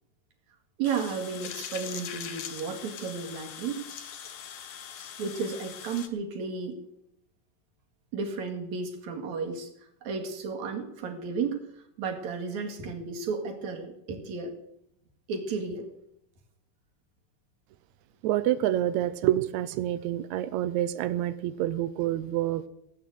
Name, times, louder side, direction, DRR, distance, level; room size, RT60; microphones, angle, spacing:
sound 1, 0.8-6.1, left 8 dB, 60° left, 1.7 m, -41 dB
voice 1, 0.8-3.9 5.0-6.8 8.1-9.7 10.0-14.5 15.3-15.9, right 5 dB, 55° right, 3 dB, 3.2 m, -33 dB
voice 2, 18.2-22.7, right 13 dB, 80° right, 12 dB, 1.6 m, -27 dB
17.5 x 8.7 x 8.0 m, 0.79 s
omnidirectional pair, 4.0 m